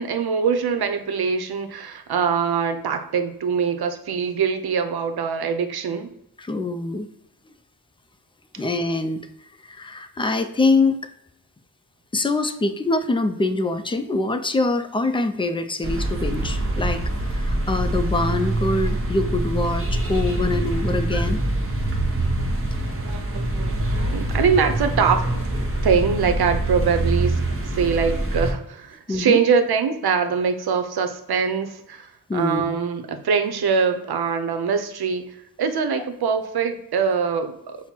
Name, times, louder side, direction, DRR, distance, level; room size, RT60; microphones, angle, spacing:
voice 1, 0.0-6.1 22.6-25.3 25.8-27.4 27.7-37.8, right 6 dB, 80° right, 8 dB, 0.7 m, -23 dB
voice 2, 6.4-7.1 8.6-9.3 9.6-11.0 12.1-21.4 22.7-22.8 29.1-29.4 32.3-32.7, left 2 dB, 15° left, 10 dB, 0.4 m, -24 dB
sound 1, 15.8-28.5, right 1 dB, 35° right, 0.9 m, -24 dB
5.7 x 2.1 x 4.4 m, 0.80 s
wide cardioid pair, 70°, 38 cm